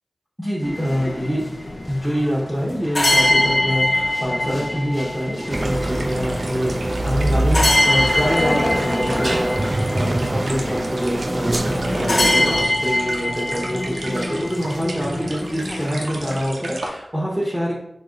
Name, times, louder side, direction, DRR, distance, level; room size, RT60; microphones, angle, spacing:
voice 1, 0.4-1.4 1.9-17.8, equal, 5° right, -6 dB, 0.9 m, -25 dB
sound 1, 0.6-16.5, left 1 dB, 45° left, 0.6 m, -24 dB
sound 2, 5.4-16.9, right 2 dB, 85° right, 0.7 m, -36 dB
sound 3, 5.5-12.6, right 1 dB, 30° right, 0.3 m, -24 dB
4.2 x 2.9 x 3.8 m, 0.78 s
wide cardioid pair, 75°, 0 cm